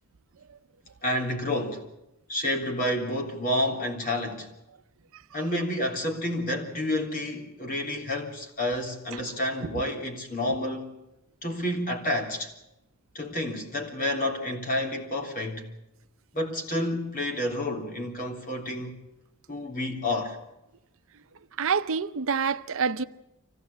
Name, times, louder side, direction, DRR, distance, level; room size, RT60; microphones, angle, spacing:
voice 1, 1.0-1.9 2.3-4.5 5.3-10.9 11.4-12.5 13.1-15.6 16.3-19.0 19.5-20.4, left 1 dB, 40° left, 3.5 m, -29 dB
voice 2, 21.6-23.0, right 5 dB, 65° right, 0.7 m, -27 dB
25.0 x 16.5 x 8.5 m
head